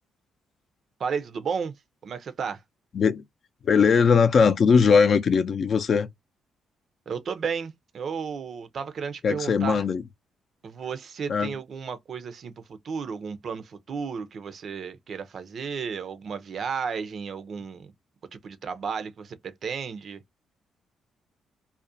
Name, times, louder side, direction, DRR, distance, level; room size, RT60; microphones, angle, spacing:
voice 1, 1.0-1.7 2.0-2.6 7.1-9.8 10.6-17.9 18.3-20.2, right 6 dB, 55° right, 0.5 m, -33 dB
voice 2, 3.6-6.1 9.2-10.0 11.3-11.5, left 6 dB, 50° left, 0.4 m, -20 dB
2.4 x 2.1 x 2.5 m
cardioid pair, 90°, 0 cm